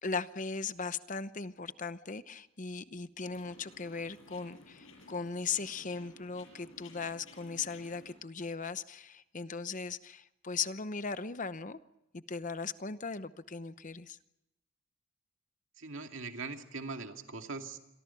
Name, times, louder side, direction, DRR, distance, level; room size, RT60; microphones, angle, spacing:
voice 1, 0.0-11.8 12.1-14.2, left 5 dB, 35° left, 13 dB, 0.8 m, -38 dB
sound 1, 3.2-8.1, left 2 dB, 65° left, 7.7 m, -56 dB
voice 2, 15.8-17.8, right 3 dB, 60° right, 4 dB, 2.4 m, -41 dB
27.5 x 23.0 x 5.8 m, 0.91 s
head